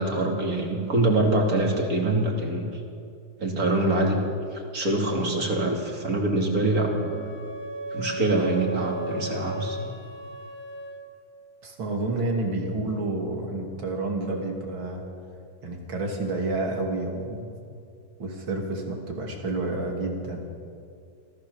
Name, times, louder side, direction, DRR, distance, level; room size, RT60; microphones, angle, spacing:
voice 1, 0.0-2.7 3.4-4.2 4.7-7.2 7.9-9.8, right 2 dB, 45° right, 1 dB, 3.1 m, -24 dB
Wind instrument woodwind instrument, 6.6-11.1, right 1 dB, 45° left, 1.8 m, -36 dB
voice 2, 11.6-15.0 15.6-17.5 18.2-20.4, right 2 dB, 85° right, 1 dB, 3.5 m, -29 dB
25.5 x 15.0 x 7.1 m, 2.4 s
omnidirectional pair, 2.1 m